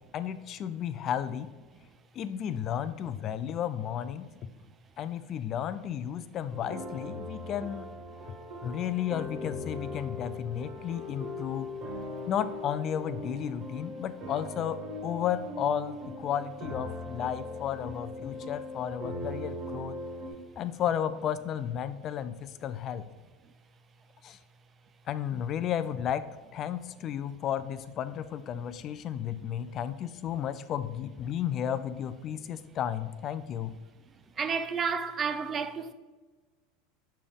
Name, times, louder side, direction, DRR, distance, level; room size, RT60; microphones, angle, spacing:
voice 1, 0.1-1.5 2.1-4.5 5.0-7.9 8.6-11.7 12.3-20.0 20.6-23.1 24.2-24.4 25.1-26.3 26.5-33.7, left 9 dB, 40° left, 0.3 m, -33 dB
sound 1, 6.5-20.3, left 1 dB, 50° right, 1.8 m, -40 dB
voice 2, 34.4-35.9, right 5 dB, 30° right, 0.4 m, -31 dB
5.5 x 5.0 x 3.5 m
supercardioid pair, 125°, 0 cm